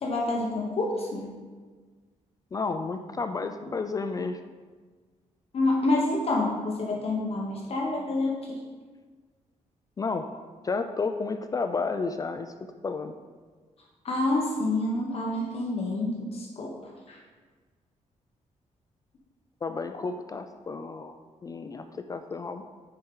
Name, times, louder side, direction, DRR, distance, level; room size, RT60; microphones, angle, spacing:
voice 1, 0.0-1.3 5.5-8.6 14.0-17.2, left 2 dB, 50° left, -2 dB, 1.0 m, -28 dB
voice 2, 2.5-4.4 10.0-10.3 10.6-12.5 12.8-13.1 19.6-21.2 21.4-22.6, left 4 dB, 30° left, 8 dB, 0.3 m, -31 dB
9.6 x 4.4 x 3.8 m, 1.4 s
cardioid pair, 135°, 13 cm